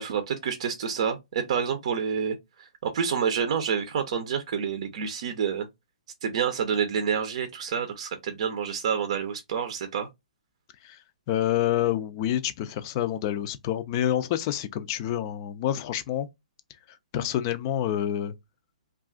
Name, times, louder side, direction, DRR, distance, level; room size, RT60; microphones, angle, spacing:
voice 1, 0.0-5.7 6.2-10.1, right 7 dB, 55° right, 0.5 m, -28 dB
voice 2, 11.3-16.3 16.9-18.3, left 11 dB, 35° left, 0.4 m, -28 dB
2.4 x 2.3 x 3.6 m
hypercardioid pair, 145°, 4 cm